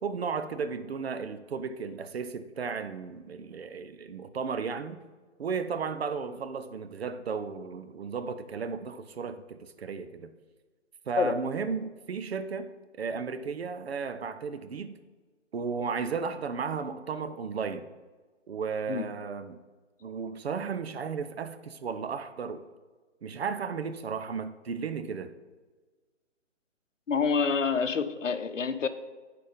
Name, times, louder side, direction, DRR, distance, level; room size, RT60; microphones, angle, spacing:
voice 1, 0.0-5.0 5.4-10.3 11.1-12.7 13.0-15.0 15.5-17.9 18.5-19.6 20.0-22.6 23.2-25.3, right 5 dB, 55° right, 0.7 m, -34 dB
voice 2, 27.1-28.9, left 5 dB, 85° left, 0.8 m, -27 dB
9.5 x 4.3 x 5.1 m
figure-of-eight pair, 150°, 37 cm